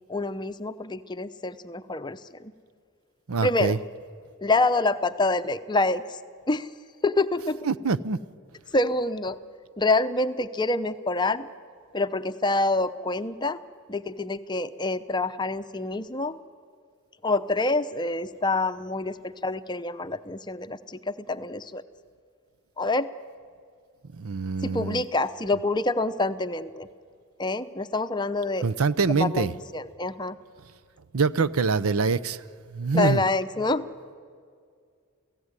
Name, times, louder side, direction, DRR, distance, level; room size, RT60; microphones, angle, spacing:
voice 1, 0.1-2.5 3.4-3.8 4.4-6.2 6.5-6.7 7.0-7.6 8.7-9.4 9.8-11.5 11.9-13.6 13.9-16.4 17.2-21.8 22.8-23.1 24.6-26.9 27.4-28.7 29.2-30.4 32.9-33.9, left 2 dB, 20° left, 11 dB, 0.7 m, -26 dB
voice 2, 3.3-3.8 7.7-8.2 24.2-25.0 28.6-29.5 31.1-32.4 32.7-33.2, right 4 dB, 80° right, 17 dB, 0.7 m, -24 dB
29.0 x 16.5 x 9.7 m, 2.2 s
head